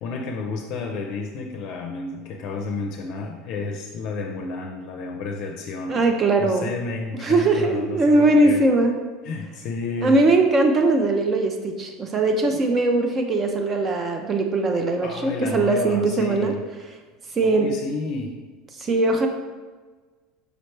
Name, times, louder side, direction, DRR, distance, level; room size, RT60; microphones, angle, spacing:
voice 1, 0.0-6.0 6.4-8.6 9.2-10.2 15.0-16.6 17.4-18.4, left 3 dB, 60° left, 2 dB, 0.5 m, -31 dB
voice 2, 5.9-6.7 7.2-8.9 10.0-16.5 17.3-17.7 18.8-19.3, right 2 dB, 30° right, 4 dB, 0.4 m, -20 dB
4.9 x 3.1 x 3.2 m, 1.4 s
supercardioid pair, 120°, 0 cm